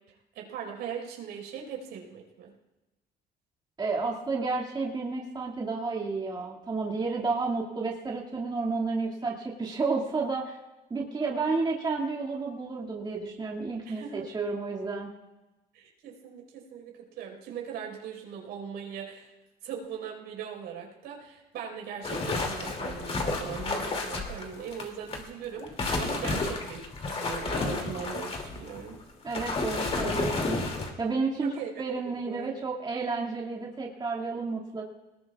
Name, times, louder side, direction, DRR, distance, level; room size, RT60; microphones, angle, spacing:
voice 1, 0.3-2.5 13.8-14.3 15.7-19.3 19.6-25.7 26.0-29.0 31.4-31.8 32.2-32.5, right 7 dB, 85° right, 0 dB, 4.9 m, -40 dB
voice 2, 3.8-10.6 10.9-15.1 29.2-30.6 31.0-34.8, right 4 dB, 25° right, -2 dB, 2.3 m, -31 dB
sound 1, 22.0-25.2 25.6-30.9, left 3 dB, 35° left, 2.7 m, -31 dB
22.5 x 20.0 x 2.4 m, 1.0 s
cardioid pair, 110°, 17 cm